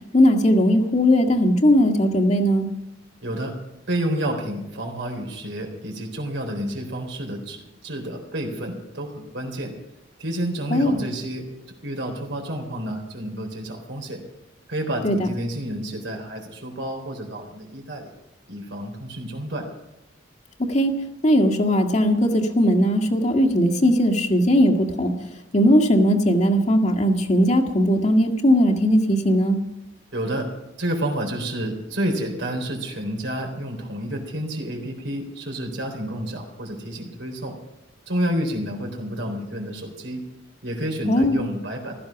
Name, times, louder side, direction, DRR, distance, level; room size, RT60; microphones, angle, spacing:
voice 1, 0.1-2.7 10.7-11.0 15.0-15.3 20.7-20.9 21.2-29.6 41.1-41.4, equal, 40° left, 3 dB, 1.8 m, -19 dB
voice 2, 3.2-3.6 3.9-9.7 10.2-11.5 11.8-14.2 14.7-18.1 18.5-19.7 30.1-30.5 30.8-37.6 38.1-40.2 40.6-42.0, right 1 dB, 80° right, 2 dB, 3.9 m, -29 dB
15.5 x 14.0 x 5.9 m, 0.88 s
head